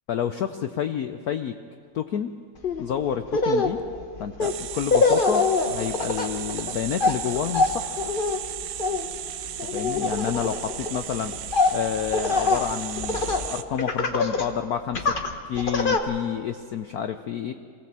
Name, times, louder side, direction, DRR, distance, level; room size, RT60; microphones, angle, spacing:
voice 1, 0.1-1.6 1.9-2.3 2.8-3.8 4.2-7.9 9.7-11.3 11.7-15.2 15.5-17.5, left 9 dB, 70° left, 8 dB, 0.8 m, -29 dB
Laughter, 2.6-2.8 3.3-13.5 13.8-14.5 14.9-16.0, left 3 dB, 40° left, 0.8 m, -25 dB
sound 1, 4.4-13.6, right 12 dB, 90° right, 1.6 m, -35 dB
23.0 x 16.5 x 7.4 m, 2.1 s
omnidirectional pair, 2.3 m